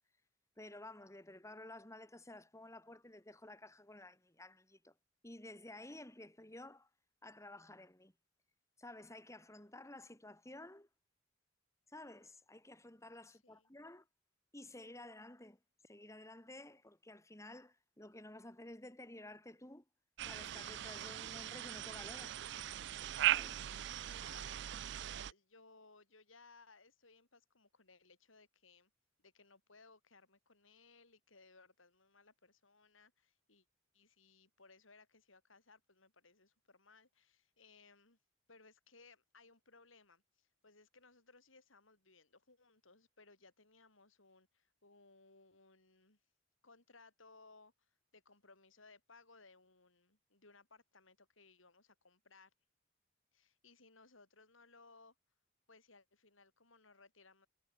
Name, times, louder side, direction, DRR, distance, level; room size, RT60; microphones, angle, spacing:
voice 1, 0.6-4.9 5.2-6.9 7.2-8.1 8.8-10.9 11.9-14.1 14.5-19.8 20.2-22.4 23.3-23.6, left 1 dB, 15° left, 3.2 m, -53 dB
voice 2, 13.3-13.7 23.6-28.9 29.2-33.7 33.9-38.2 38.5-46.2 46.6-52.5 53.3-55.2 55.7-57.5, left 3 dB, 85° left, 7.2 m, -64 dB
sound 1, 20.2-25.3, right 12 dB, 60° right, 0.4 m, -39 dB
head